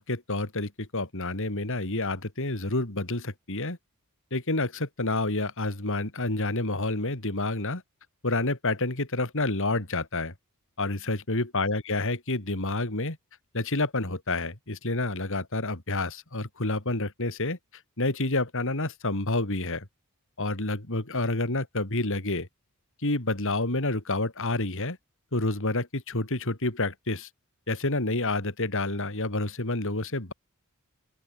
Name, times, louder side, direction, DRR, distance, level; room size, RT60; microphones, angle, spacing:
voice 1, 0.0-3.8 4.3-7.8 8.2-10.3 10.8-13.2 13.5-17.6 18.0-19.9 20.4-22.5 23.0-25.0 25.3-27.3 27.7-30.3, left 2 dB, 60° left, 3.5 m, -29 dB
open air
head